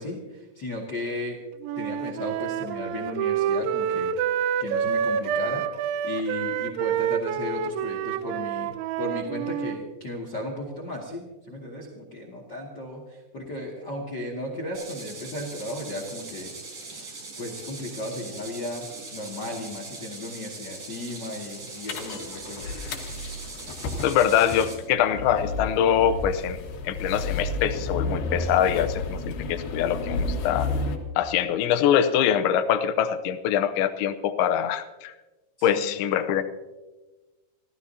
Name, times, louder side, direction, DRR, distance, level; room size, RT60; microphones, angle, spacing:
voice 1, 0.0-1.4 1.7-4.1 4.6-8.7 9.0-16.5 16.9-17.1 17.4-22.7 35.6-36.4, left 1 dB, 45° left, 1 dB, 1.5 m, -35 dB
Wind instrument woodwind instrument, 1.6-9.8, right 8 dB, 80° right, 3.0 m, -28 dB
sound 1, 14.7-24.8, right 3 dB, 45° right, 5.9 m, -41 dB
sound 2, 21.9-31.0, left 3 dB, 65° left, 3.1 m, -31 dB
voice 2, 24.0-26.6 26.8-30.7 31.2-35.1 35.6-36.4, left 9 dB, 80° left, 10 dB, 3.1 m, -24 dB
27.0 x 15.0 x 2.8 m, 1.1 s
omnidirectional pair, 5.4 m